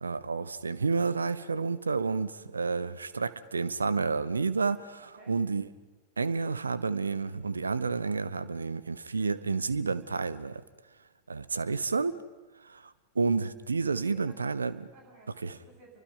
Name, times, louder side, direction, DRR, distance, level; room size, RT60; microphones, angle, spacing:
voice 1, 0.0-5.6 6.2-10.6 11.3-12.2 12.6-14.8 15.4-15.6, right 4 dB, 75° right, 17 dB, 1.0 m, -30 dB
voice 2, 5.0-5.3 13.9-14.5 14.9-16.0, right 2 dB, 55° right, 0 dB, 8.0 m, -55 dB
29.5 x 24.5 x 5.5 m, 1.2 s
figure-of-eight pair, 90°, 0 cm